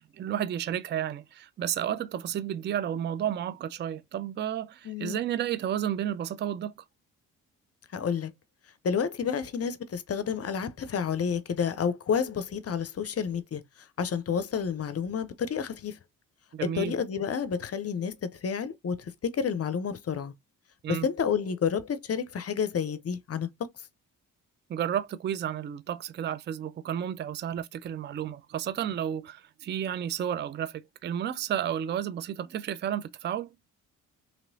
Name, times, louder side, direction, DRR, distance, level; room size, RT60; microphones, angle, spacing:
voice 1, 0.1-6.7 16.5-16.9 20.8-21.1 24.7-33.5, right 10 dB, 30° right, 0.4 m, -32 dB
voice 2, 4.8-5.2 7.9-8.3 8.8-13.6 14.0-16.0 16.6-20.3 20.9-23.5, left 7 dB, 40° left, 0.6 m, -30 dB
3.0 x 2.9 x 2.6 m
hypercardioid pair, 50°, 39 cm